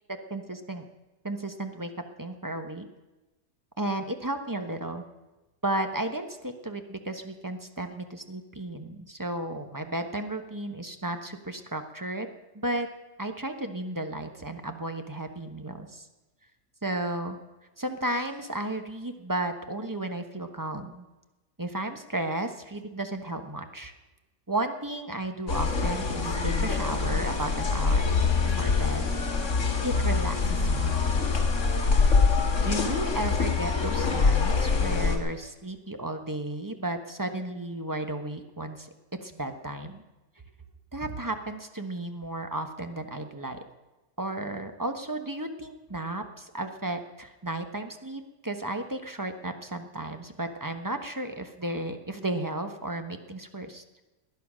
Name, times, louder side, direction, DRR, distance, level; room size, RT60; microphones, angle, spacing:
voice 1, 0.1-0.8 1.2-1.9 2.2-2.9 3.8-5.0 5.6-12.3 12.5-12.9 13.2-16.1 16.8-17.4 17.8-21.0 21.6-23.9 24.5-28.0 28.4-29.5 29.8-31.0 32.0-32.1 32.6-38.9 39.2-40.0 40.9-43.6 44.2-53.8, right 1 dB, 15° right, 6 dB, 1.1 m, -34 dB
sound 1, 25.5-35.2, left 4 dB, 55° left, 2.1 m, -25 dB
19.5 x 11.0 x 6.4 m, 1.1 s
omnidirectional pair, 1.5 m